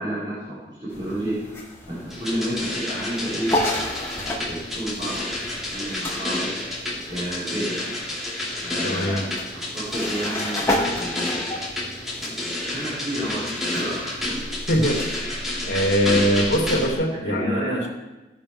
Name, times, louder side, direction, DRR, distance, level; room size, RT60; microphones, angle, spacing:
voice 1, 0.0-3.5 4.2-5.3 5.7-6.5 7.1-7.8 8.6-11.4 12.2-14.2 17.2-17.8, right 1 dB, 30° right, -12 dB, 4.6 m, -31 dB
sound 1, 0.9-16.9, left 1 dB, 15° left, 2.3 m, -33 dB
sound 2, 2.1-16.9, left 1 dB, ahead, 4.0 m, -30 dB
voice 2, 8.8-9.3 14.7-15.0 15.7-17.9, equal, 70° left, -1 dB, 3.1 m, -22 dB
17.0 x 11.5 x 3.5 m, 1.1 s
head